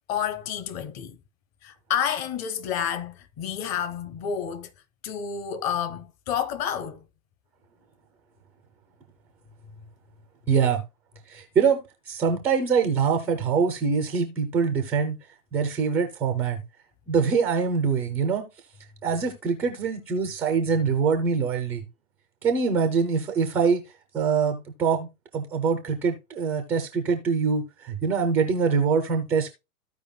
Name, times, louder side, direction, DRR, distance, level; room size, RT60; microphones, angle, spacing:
voice 1, 0.1-1.2 1.6-4.7 5.0-7.0, left 8 dB, 35° left, 1.1 m, -29 dB
voice 2, 10.5-10.8 11.3-11.8 12.1-15.2 15.5-16.6 17.1-18.5 19.0-21.9 22.4-23.8 24.1-25.1 25.3-29.5, right 5 dB, 5° right, 0.3 m, -24 dB
14.5 x 5.0 x 2.3 m
figure-of-eight pair, 105°, 46 cm